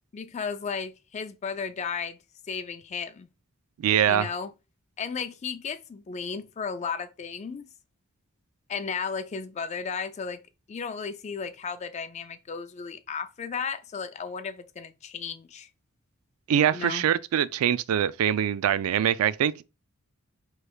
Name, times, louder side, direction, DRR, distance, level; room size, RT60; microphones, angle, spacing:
voice 1, 0.1-2.2 2.5-3.3 4.1-4.5 5.0-7.7 8.7-10.4 10.7-15.7 16.7-17.0, left 6 dB, 30° left, 0.3 m, -34 dB
voice 2, 3.8-4.3 16.5-19.6, right 9 dB, 80° right, 0.3 m, -23 dB
4.8 x 3.2 x 2.3 m
head